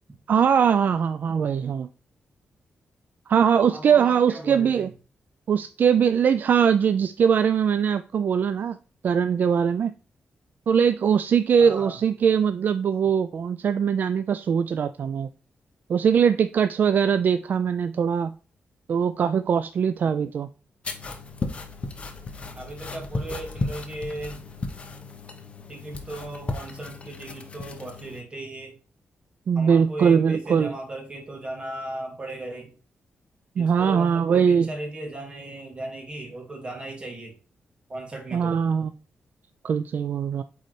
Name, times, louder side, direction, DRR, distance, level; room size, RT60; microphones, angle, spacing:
voice 1, 0.3-1.9 3.3-4.9 5.5-8.8 9.0-9.9 10.7-15.3 15.9-18.3 18.9-20.5 29.5-30.7 33.6-34.7 38.3-38.9 39.6-40.4, right 7 dB, 55° right, 0.3 m, -21 dB
voice 2, 3.7-4.9 11.6-12.0 22.6-24.5 25.7-28.8 29.5-32.8 33.5-37.4 37.9-38.6, right 1 dB, 25° right, 2.2 m, -37 dB
sound 1, 20.8-28.2, left 3 dB, 30° left, 0.9 m, -35 dB
8.3 x 4.0 x 3.2 m
wide cardioid pair, 140°, 4 cm